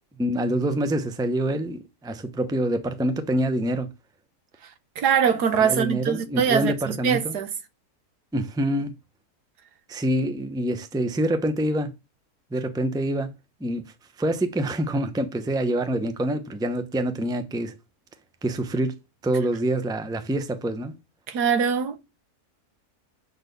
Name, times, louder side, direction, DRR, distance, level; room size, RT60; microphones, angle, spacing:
voice 1, 0.2-3.9 5.6-7.4 8.3-9.0 9.9-11.9 12.5-13.3 13.6-13.8 14.2-17.7 18.4-18.9 19.2-20.9, right 1 dB, 5° right, 0.5 m, -26 dB
voice 2, 5.0-7.5 21.3-22.0, right 7 dB, 90° right, 1.6 m, -22 dB
7.1 x 4.3 x 6.8 m
omnidirectional pair, 1.6 m